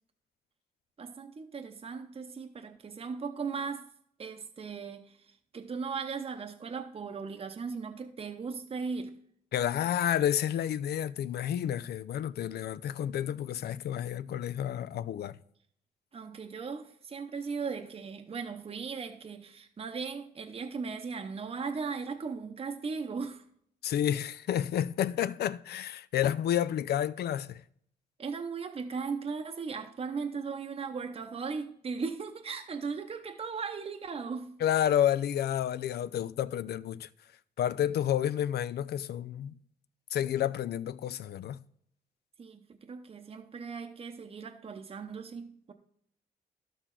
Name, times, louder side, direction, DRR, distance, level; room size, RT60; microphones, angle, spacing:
voice 1, 1.0-3.9 4.2-9.2 16.1-23.4 28.2-34.6 42.4-45.7, right 5 dB, 35° right, 0.7 m, -38 dB
voice 2, 9.5-15.4 23.8-27.6 34.6-37.1 37.6-39.5 40.1-41.6, left 10 dB, 75° left, 0.4 m, -30 dB
11.5 x 6.4 x 3.8 m
cardioid pair, 85°, 17 cm